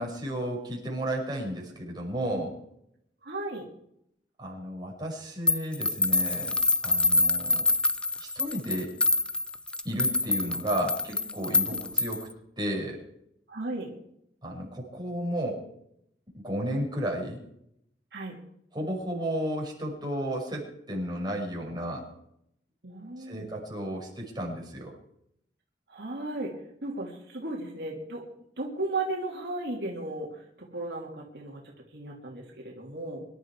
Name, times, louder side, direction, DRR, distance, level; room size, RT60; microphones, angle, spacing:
voice 1, 0.0-2.6 4.4-6.6 6.8-7.6 8.2-8.9 9.8-12.3 12.6-13.0 14.4-15.6 16.3-17.4 18.7-22.1 23.2-25.0, equal, 25° right, -1 dB, 5.4 m, -33 dB
voice 2, 3.2-3.7 11.7-11.8 13.5-13.9 18.1-18.3 22.8-23.5 25.9-26.5 26.8-28.2 28.6-30.4 30.7-31.6 31.9-33.3, right 2 dB, 65° right, -1 dB, 2.9 m, -35 dB
sound 1, 5.5-12.3, left 2 dB, 5° left, 0.6 m, -26 dB
24.5 x 12.0 x 4.8 m, 0.77 s
head